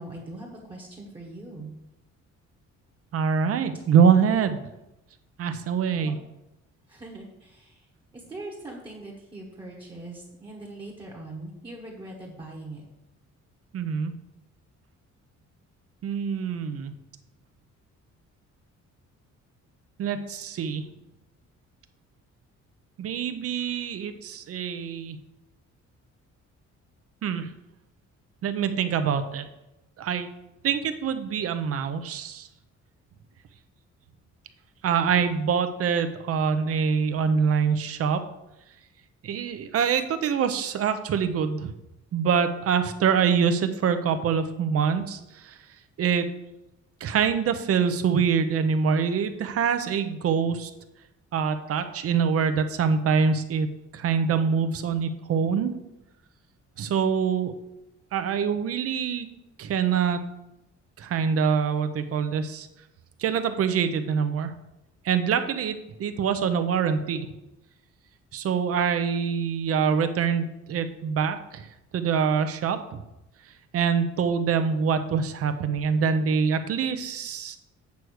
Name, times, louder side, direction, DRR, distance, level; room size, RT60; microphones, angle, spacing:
voice 1, 0.0-1.7 5.9-6.1 6.9-7.9 8.1-12.9, right 2 dB, 15° right, -3 dB, 1.2 m, -41 dB
voice 2, 3.1-4.6 5.4-6.2 13.7-14.1 16.0-16.9 20.0-20.8 23.0-25.2 27.2-27.5 28.4-29.4 30.0-30.3 30.6-32.5 34.8-38.2 39.2-41.7 42.1-45.5 46.0-46.3 47.0-50.7 51.3-53.7 53.9-55.7 56.8-57.5 58.1-59.3 59.6-60.2 61.0-62.7 63.2-64.5 65.0-67.3 68.3-71.7 71.9-73.0 73.7-77.6, right 6 dB, 50° right, 10 dB, 0.7 m, -25 dB
8.3 x 4.7 x 6.3 m, 0.91 s
cardioid pair, 180°, 29 cm